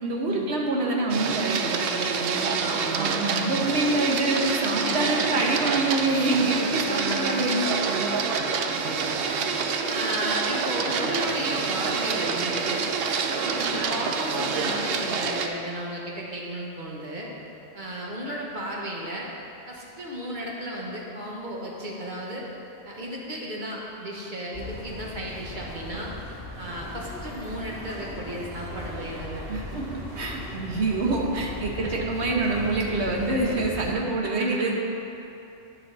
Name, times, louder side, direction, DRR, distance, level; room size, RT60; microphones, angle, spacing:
voice 1, 0.0-2.6 2.9-8.1 29.5-34.7, right 2 dB, 90° right, -1 dB, 1.3 m, -26 dB
Printer, 1.1-15.5, right 5 dB, 70° right, 0.8 m, -27 dB
voice 2, 2.6-3.2 4.7-5.4 6.8-7.5 8.7-9.4 9.9-12.9 13.3-17.3 17.7-19.3 19.7-22.5 22.8-26.1 26.6-29.5 31.8-31.9 33.7-33.8 34.2-34.7, right 1 dB, 50° right, -3 dB, 1.4 m, -34 dB
sound 1, 24.5-33.9, left 1 dB, 20° right, 1.8 m, -38 dB
10.5 x 5.8 x 4.0 m, 2.8 s
omnidirectional pair, 1.1 m